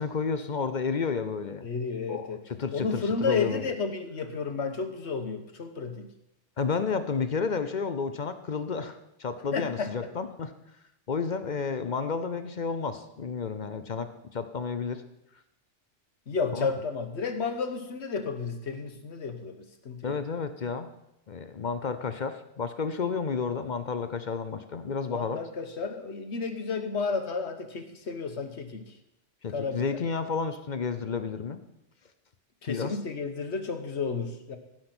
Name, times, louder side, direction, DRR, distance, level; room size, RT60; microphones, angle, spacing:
voice 1, 0.0-1.7 2.1-3.7 6.6-10.5 11.1-15.0 16.5-16.7 20.0-20.9 21.3-25.4 29.4-31.6 32.7-33.0, left 5 dB, 45° left, 10 dB, 0.7 m, -31 dB
voice 2, 1.6-2.4 2.7-6.1 9.5-10.1 16.3-20.2 25.1-29.0 29.5-30.0 32.6-34.6, left 4 dB, 65° left, 7 dB, 1.4 m, -32 dB
15.5 x 5.8 x 6.1 m, 0.84 s
omnidirectional pair, 1.2 m